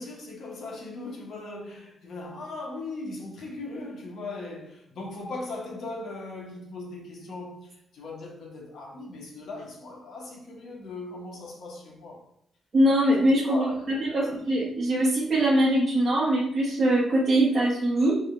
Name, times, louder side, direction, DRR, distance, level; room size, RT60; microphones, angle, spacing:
voice 1, 0.0-12.3 13.5-14.4, left 2 dB, 70° left, 1.1 m, -39 dB
voice 2, 12.7-18.1, right 1 dB, 40° right, 1.0 m, -22 dB
3.6 x 2.4 x 4.4 m
cardioid pair, 110°, 0 cm